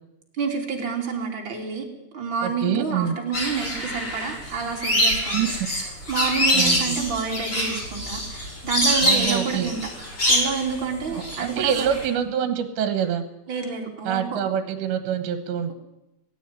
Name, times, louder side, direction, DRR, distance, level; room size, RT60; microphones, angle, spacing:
voice 1, 0.4-1.9 2.1-9.8 10.3-11.9 13.5-14.4, right 5 dB, 30° right, 1 dB, 3.6 m, -29 dB
voice 2, 2.4-3.2 5.3-5.7 6.5-7.0 9.0-9.7 11.1-13.3 14.1-15.7, right 9 dB, 75° right, 9 dB, 3.4 m, -26 dB
sound 1, 3.3-12.1, equal, 30° left, 7.1 m, -25 dB
17.0 x 16.5 x 9.7 m, 0.94 s
omnidirectional pair, 5.2 m